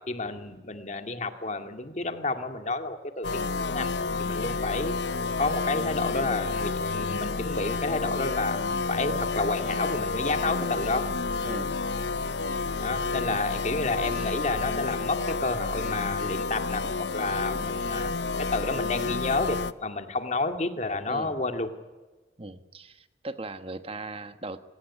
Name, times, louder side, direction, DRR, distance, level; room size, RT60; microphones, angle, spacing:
voice 1, 0.1-3.4 3.7-4.9 5.4-8.6 8.9-11.1 12.8-18.1 18.4-21.7, left 3 dB, 40° left, 6 dB, 2.2 m, -30 dB
sound 1, 3.2-19.7, left 4 dB, 80° left, 0.8 m, -30 dB
voice 2, 11.4-11.8 14.0-14.5 21.1-21.4 22.4-24.6, right 2 dB, 30° right, 10 dB, 1.2 m, -39 dB
25.5 x 18.5 x 9.9 m, 1.2 s
head